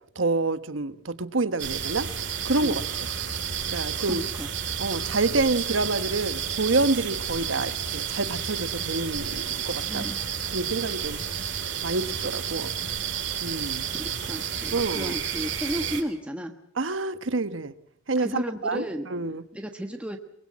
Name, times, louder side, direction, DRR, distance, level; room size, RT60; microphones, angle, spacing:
voice 1, 0.1-2.1 2.4-2.8 3.7-4.2 4.8-10.0 10.5-11.2 11.8-12.7 13.4-13.9 14.7-15.1 16.8-17.7 18.1-18.8 19.1-19.4, right 3 dB, 80° right, 12 dB, 1.3 m, -27 dB
sound 1, 1.6-16.0, right 8 dB, 60° right, 3.4 m, -31 dB
voice 2, 4.0-4.5 9.9-10.2 13.9-16.5 18.2-19.1 19.5-20.2, equal, 5° right, 4 dB, 1.3 m, -34 dB
23.5 x 23.0 x 7.5 m, 0.70 s
head